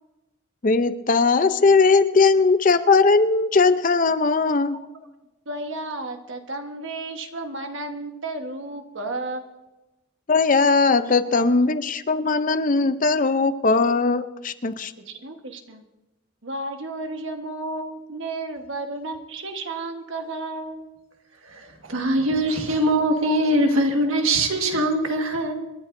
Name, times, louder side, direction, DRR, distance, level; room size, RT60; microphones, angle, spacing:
voice 1, 0.6-4.8 10.3-14.9, left 4 dB, 40° left, 11 dB, 0.6 m, -19 dB
voice 2, 5.4-9.4 11.0-11.1 11.4-11.5 15.0-15.8 16.4-20.9, right 2 dB, 65° right, 5 dB, 1.3 m, -33 dB
voice 3, 21.4-25.5, right 1 dB, 90° right, 4 dB, 1.7 m, -22 dB
27.5 x 11.0 x 2.6 m, 1.0 s
head